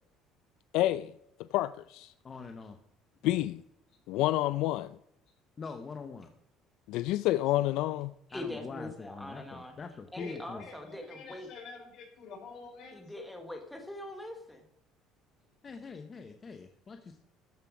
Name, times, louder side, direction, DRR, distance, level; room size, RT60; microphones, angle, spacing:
voice 1, 0.7-1.1 1.5-2.1 3.2-3.6 4.1-5.0 6.9-8.1, left 15 dB, 70° left, 0.3 m, -28 dB
voice 2, 2.2-2.8 5.6-6.3 8.3-10.7 15.6-17.2, left 4 dB, 25° left, 0.8 m, -43 dB
voice 3, 8.3-9.7 10.1-11.5 12.9-14.6, left 1 dB, 5° left, 1.1 m, -42 dB
voice 4, 10.2-13.1, left 4 dB, 50° left, 5.2 m, -47 dB
13.0 x 7.4 x 6.0 m
cardioid pair, 170°, 0 cm